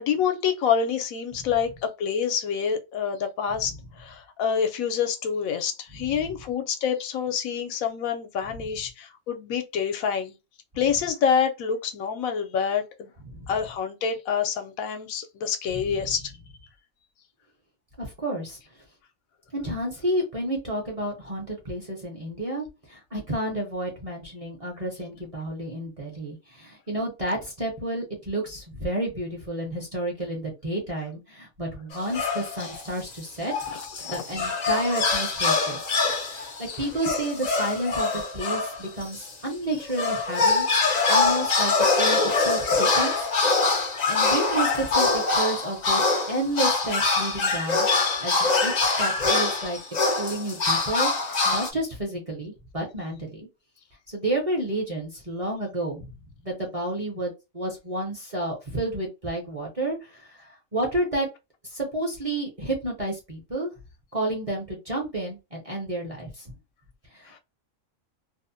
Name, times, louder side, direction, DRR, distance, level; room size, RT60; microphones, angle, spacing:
voice 1, 0.0-10.4 10.8-13.1 13.5-16.3 33.7-34.2 36.8-36.9 67.3-67.4, left 7 dB, 85° left, 1.0 m, -27 dB
voice 2, 18.0-18.6 19.5-33.5 34.1-35.8 36.0-36.5 36.8-40.7 41.1-43.3 44.1-47.9 48.2-48.3 48.6-49.8 50.2-51.1 51.4-53.5 54.1-56.1 56.4-61.3 61.6-63.7 64.1-66.5 67.1-67.4, right 1 dB, 35° right, 0.6 m, -30 dB
sound 1, 31.9-32.8 33.2-39.3 39.7-51.7, left 3 dB, 55° left, 0.5 m, -24 dB
2.7 x 2.0 x 2.5 m
omnidirectional pair, 1.4 m